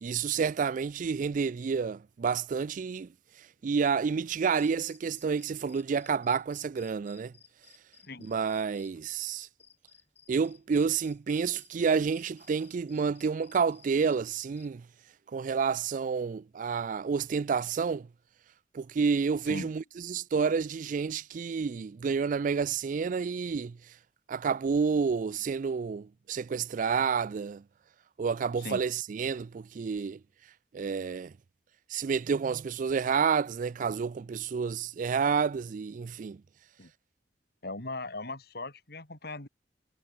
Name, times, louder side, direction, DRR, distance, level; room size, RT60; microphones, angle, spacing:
voice 1, 0.0-3.1 3.6-7.3 8.2-9.5 10.3-14.8 15.3-18.1 18.7-23.8 24.3-27.6 28.2-30.2 30.7-31.3 31.9-36.4, right 5 dB, 45° right, 0.4 m, -29 dB
sound 1, 4.5-14.7, left 8 dB, 35° left, 6.5 m, -61 dB
voice 2, 37.6-39.5, left 2 dB, 60° left, 4.5 m, -39 dB
head